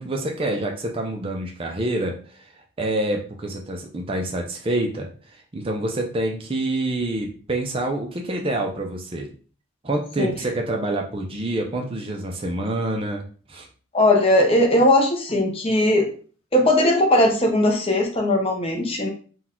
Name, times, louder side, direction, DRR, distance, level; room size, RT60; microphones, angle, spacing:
voice 1, 0.0-2.5 2.8-9.3 9.8-13.7, right 1 dB, 25° right, 1 dB, 0.5 m, -27 dB
voice 2, 13.9-16.1 16.5-19.1, left 1 dB, 25° left, 1 dB, 0.7 m, -19 dB
4.0 x 2.3 x 4.3 m, 0.40 s
head